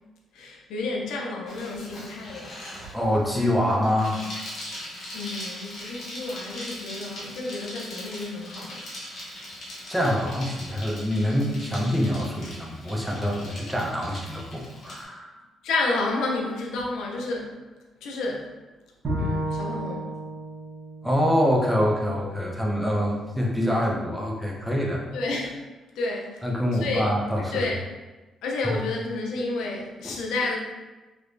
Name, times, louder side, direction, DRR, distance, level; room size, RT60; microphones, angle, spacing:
voice 1, 0.3-2.5 5.1-8.9 15.6-17.6 18.0-18.5 19.2-20.1 25.1-25.6 25.9-26.4 26.7-27.1 27.4-27.8 28.4-30.6, left 3 dB, 85° left, -1 dB, 0.6 m, -30 dB
Bicycle, 1.5-15.0, left 1 dB, 60° left, 1.2 m, -40 dB
voice 2, 2.9-4.2 9.9-15.4 21.0-25.0 26.4-27.7 28.6-28.7 30.0-30.2, equal, ahead, -2 dB, 0.7 m, -25 dB
Bowed string instrument, 19.0-22.3, right 1 dB, 45° right, 1.2 m, -32 dB
3.3 x 2.9 x 2.7 m, 1.2 s
cardioid pair, 90°, 0 cm